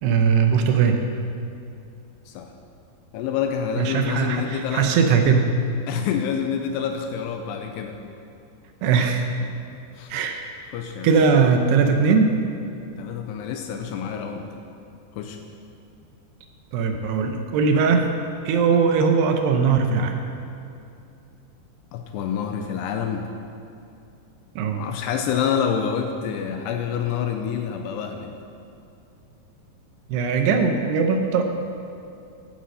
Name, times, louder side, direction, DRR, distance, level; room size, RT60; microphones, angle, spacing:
voice 1, 0.0-1.0 3.8-5.5 8.8-9.2 10.1-10.5 11.0-12.4 16.7-18.1 18.5-20.2 24.6-24.9 30.1-31.4, right 5 dB, 80° right, 5 dB, 2.8 m, -20 dB
voice 2, 3.1-4.9 5.9-8.0 10.0-10.1 10.7-11.1 13.0-14.5 15.2-15.4 21.9-23.3 24.8-28.3, left 7 dB, 85° left, 5 dB, 2.7 m, -27 dB
13.0 x 9.5 x 6.4 m, 2.6 s
omnidirectional pair, 5.0 m